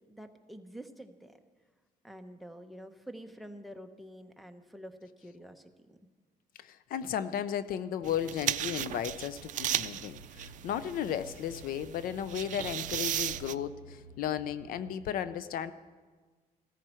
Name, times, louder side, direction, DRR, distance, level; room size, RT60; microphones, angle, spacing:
voice 1, 0.1-1.4 2.0-6.0, equal, ahead, 9 dB, 0.9 m, -48 dB
voice 2, 6.6-15.7, left 9 dB, 70° left, 14 dB, 0.5 m, -35 dB
sound 1, 8.0-15.0, equal, 40° left, 1.8 m, -53 dB
sound 2, 8.0-13.5, right 12 dB, 55° right, 0.5 m, -36 dB
16.5 x 14.0 x 4.4 m, 1.4 s
cardioid pair, 125°, 15 cm